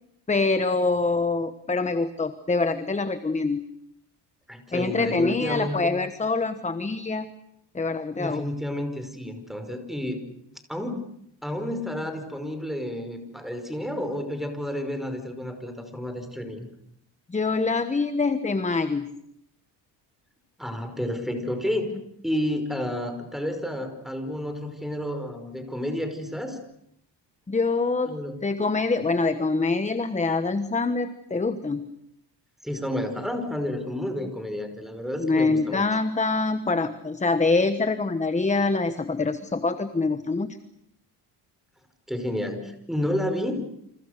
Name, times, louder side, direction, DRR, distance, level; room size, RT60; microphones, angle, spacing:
voice 1, 0.3-3.6 4.7-7.3 7.7-8.4 17.3-19.1 27.5-28.1 28.4-31.9 35.2-40.6, left 3 dB, 15° left, 11 dB, 1.3 m, -25 dB
voice 2, 4.5-6.0 8.2-10.2 10.7-11.1 11.4-16.7 20.6-21.9 22.2-26.6 28.1-28.4 32.6-35.8 42.1-43.7, left 1 dB, ahead, 7 dB, 5.2 m, -30 dB
29.5 x 27.0 x 6.7 m, 0.76 s
cardioid pair, 125°, 44 cm